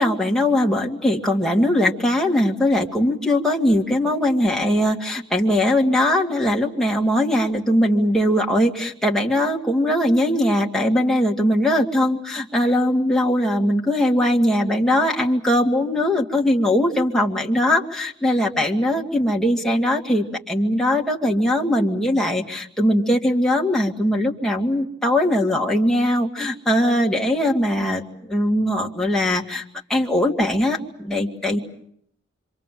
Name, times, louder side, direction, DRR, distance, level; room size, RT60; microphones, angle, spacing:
voice 1, 0.0-28.0 28.3-29.6 29.9-31.6, left 1 dB, 5° left, -1 dB, 2.4 m, -20 dB
26.5 x 26.5 x 7.6 m, 0.69 s
head